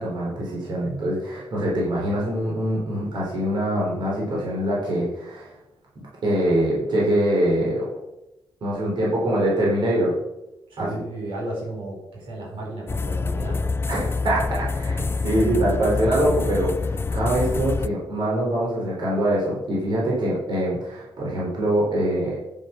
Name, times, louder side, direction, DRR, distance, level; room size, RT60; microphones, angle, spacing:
voice 1, 0.0-5.5 6.2-7.8 8.6-10.1 10.8-10.9 13.9-22.4, right 1 dB, 65° right, -5 dB, 4.0 m, -24 dB
voice 2, 10.7-13.7, right 1 dB, 85° right, -3 dB, 4.6 m, -33 dB
sound 1, 12.9-17.9, left 4 dB, 30° left, 0.4 m, -26 dB
9.2 x 8.0 x 5.7 m, 0.92 s
wide cardioid pair, 125°, 8 cm